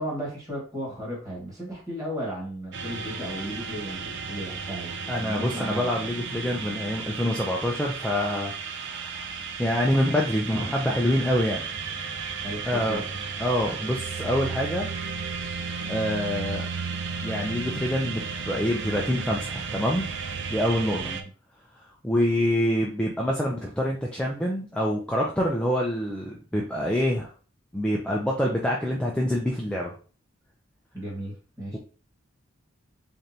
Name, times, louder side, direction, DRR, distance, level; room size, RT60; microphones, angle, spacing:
voice 1, 0.0-4.9 5.2-5.9 10.1-10.2 10.5-10.7 12.4-13.1 21.0-21.2 30.9-31.8, equal, 15° right, -4 dB, 1.6 m, -35 dB
sound 1, 2.7-21.2, right 5 dB, 55° right, 0.5 m, -34 dB
voice 2, 5.1-9.3 9.6-11.6 12.7-13.0 13.4-14.9 15.9-16.7 17.2-20.1 20.5-21.1 22.0-27.3 27.7-29.9, equal, 5° left, -3 dB, 0.4 m, -26 dB
3.8 x 3.3 x 2.8 m, 0.38 s
head